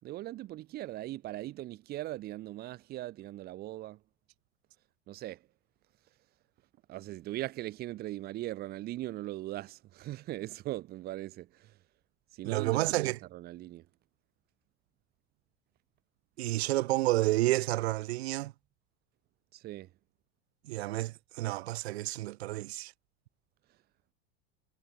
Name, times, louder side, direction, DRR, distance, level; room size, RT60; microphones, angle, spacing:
voice 1, 0.0-4.0 5.1-5.5 6.9-11.8 12.3-13.9 19.5-19.9, right 16 dB, 30° right, 7.3 m, -40 dB
voice 2, 12.4-13.2 16.4-18.5 20.7-22.9, right 17 dB, 70° right, 2.4 m, -30 dB
supercardioid pair, 180°, 32 cm